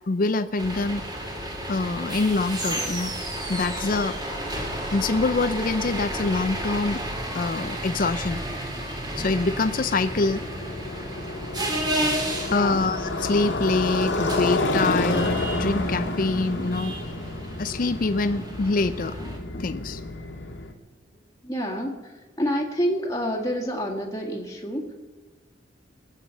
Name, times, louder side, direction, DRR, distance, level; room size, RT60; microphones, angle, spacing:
voice 1, 0.1-1.0 1.7-3.1 3.5-4.2 4.9-7.0 7.3-8.4 9.2-10.4 12.5-16.9 17.6-20.0, left 3 dB, 45° left, 10 dB, 0.5 m, -25 dB
sound 1, 0.6-19.4, right 1 dB, 20° right, 2.2 m, -32 dB
Motorcycle, 9.3-20.7, left 2 dB, 70° left, 1.8 m, -30 dB
voice 2, 12.5-12.8 21.4-24.9, equal, 15° left, -1 dB, 1.8 m, -28 dB
20.5 x 8.3 x 7.0 m, 1.3 s
head